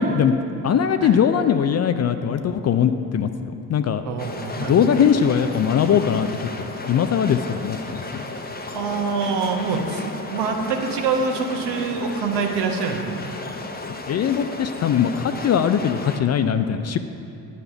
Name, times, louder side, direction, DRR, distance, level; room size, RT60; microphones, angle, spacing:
voice 1, 0.0-4.0 4.6-8.2 14.1-17.0, left 8 dB, 35° left, 10 dB, 0.4 m, -21 dB
voice 2, 4.0-4.9 8.7-13.3, right 5 dB, 60° right, 3 dB, 1.2 m, -25 dB
sound 1, 4.2-16.2, left 2 dB, 20° left, 0.9 m, -34 dB
9.6 x 4.1 x 6.8 m, 2.7 s
hypercardioid pair, 50°, 45 cm